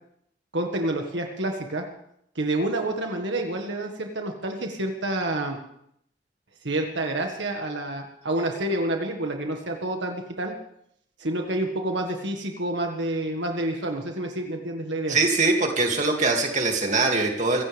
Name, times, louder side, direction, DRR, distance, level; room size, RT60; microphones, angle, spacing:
voice 1, 0.5-1.9 2.4-5.6 6.6-10.5 11.2-15.2, right 1 dB, 75° right, 3 dB, 1.8 m, -28 dB
voice 2, 15.1-17.6, right 3 dB, 40° right, 2 dB, 2.6 m, -22 dB
25.0 x 16.0 x 3.5 m, 0.71 s
head